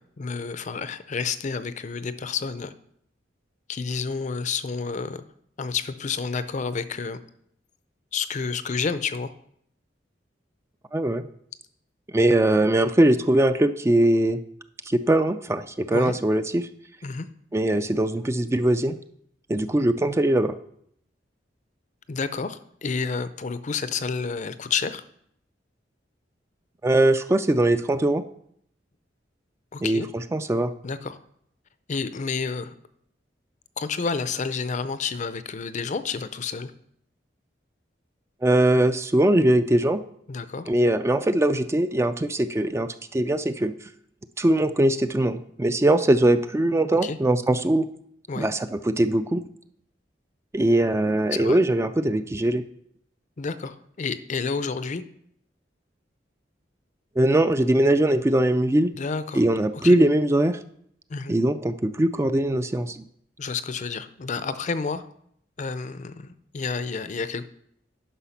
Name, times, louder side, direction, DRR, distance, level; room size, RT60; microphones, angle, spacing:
voice 1, 0.0-2.7 3.7-5.3 5.6-7.2 8.1-9.3 15.9-16.1 17.0-17.3 22.1-25.0 29.7-30.1 30.8-31.2 31.9-32.7 33.8-36.7 40.3-40.7 47.0-47.2 48.3-48.5 51.3-51.6 53.4-55.0 58.9-59.4 59.7-59.9 61.1-61.3 63.4-65.0 65.6-67.4, left 5 dB, 45° left, 13 dB, 0.5 m, -30 dB
voice 2, 10.9-11.2 12.1-14.4 14.9-16.7 17.5-19.0 19.5-20.6 26.8-28.2 29.8-30.7 38.4-40.0 40.7-43.7 44.4-47.9 48.4-49.4 50.5-52.6 57.2-58.9 59.3-60.6 61.3-63.0, right 1 dB, 15° right, 11 dB, 0.3 m, -21 dB
9.9 x 5.7 x 5.8 m, 0.69 s
head